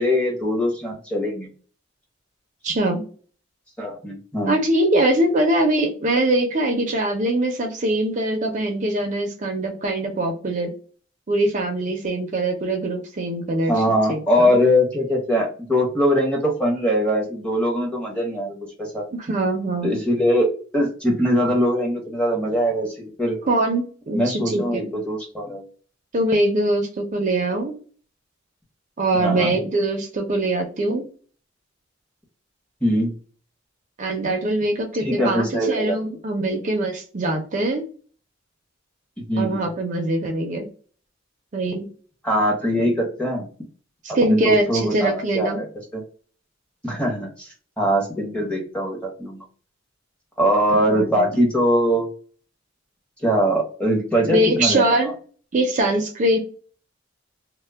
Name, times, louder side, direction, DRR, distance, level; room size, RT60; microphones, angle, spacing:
voice 1, 0.0-1.5 3.8-4.6 13.7-19.0 19.8-23.4 24.1-25.6 29.1-29.6 32.8-33.1 35.0-36.0 39.3-39.7 42.2-43.5 44.2-45.7 45.9-46.0 46.8-47.5 47.8-49.4 50.4-52.1 53.2-54.9, equal, 5° left, -1 dB, 0.7 m, -22 dB
voice 2, 2.6-3.0 4.5-10.7 11.3-13.7 14.1-14.5 19.1-20.0 23.5-24.9 26.1-27.7 29.0-31.0 34.0-37.8 39.4-40.7 41.5-41.9 44.0-45.6 50.7-51.3 54.3-55.1 55.5-56.4, right 1 dB, 40° right, 3 dB, 0.4 m, -22 dB
2.1 x 2.0 x 3.3 m, 0.42 s
head